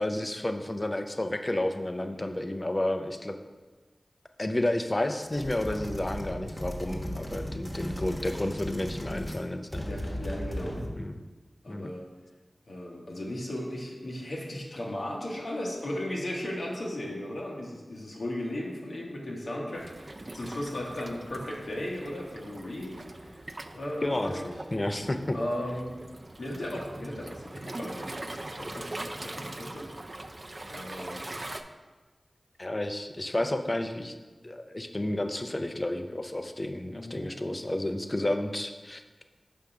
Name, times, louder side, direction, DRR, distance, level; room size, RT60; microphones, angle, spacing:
voice 1, 0.0-3.4 4.4-9.9 11.0-11.2 11.7-11.9 24.0-24.4 24.7-25.4 32.6-34.1 34.4-39.0, left 1 dB, 35° left, 7 dB, 0.5 m, -31 dB
voice 2, 2.0-2.3 9.9-10.8 11.6-12.0 12.7-22.9 23.3-23.4 23.7-24.5 25.3-25.9 26.4-28.2 28.6-29.9 30.7-31.2 36.9-37.3, left 1 dB, 85° left, -3 dB, 1.1 m, -36 dB
sound 1, 5.2-9.5 9.7-11.0, equal, 10° left, 1.1 m, -36 dB
Waves surf, 19.7-31.6, right 2 dB, 45° right, 0.4 m, -42 dB
5.1 x 3.6 x 5.7 m, 1.3 s
cardioid pair, 45°, 0 cm